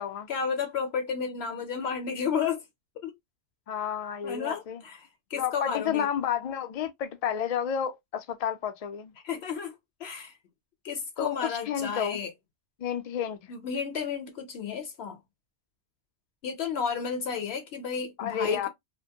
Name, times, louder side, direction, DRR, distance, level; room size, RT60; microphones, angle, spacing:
voice 1, 0.3-2.6 3.0-3.1 4.2-6.1 9.2-9.7 10.0-10.4 10.8-12.3 13.5-15.2 16.4-18.7, left 6 dB, 70° left, 0.8 m, -32 dB
voice 2, 3.7-4.8 5.4-9.1 11.2-12.2 12.8-13.4 18.2-18.7, left 8 dB, 55° left, 0.4 m, -31 dB
2.5 x 2.2 x 2.7 m
omnidirectional pair, 1.1 m